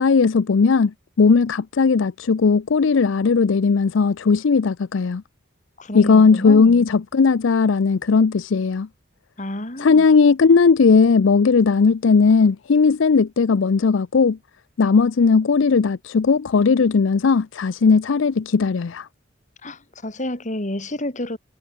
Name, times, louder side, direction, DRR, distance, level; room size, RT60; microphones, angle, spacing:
voice 1, 0.0-5.2 5.9-8.9 9.8-14.4 14.8-19.1, left 5 dB, 65° left, 0.5 m, -17 dB
voice 2, 5.8-6.9 9.4-10.1 19.6-21.4, left 1 dB, 40° left, 3.5 m, -29 dB
head